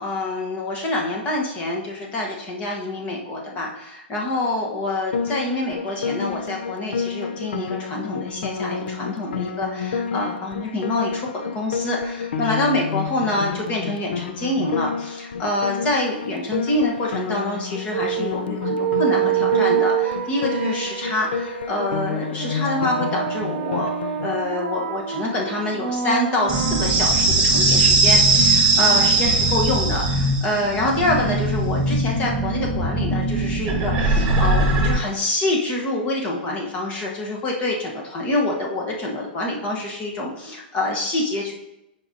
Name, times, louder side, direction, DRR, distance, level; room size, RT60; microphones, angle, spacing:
voice 1, 0.0-23.9 24.2-41.5, left 2 dB, 25° left, -1 dB, 1.2 m, -26 dB
Piano, 5.1-24.3, left 6 dB, 80° left, 0.5 m, -30 dB
sound 1, 17.9-27.3, right 11 dB, 80° right, 0.7 m, -26 dB
sound 2, 26.5-34.9, right 2 dB, 20° right, 1.5 m, -19 dB
9.6 x 5.1 x 2.8 m, 0.90 s
hypercardioid pair, 150°, 6 cm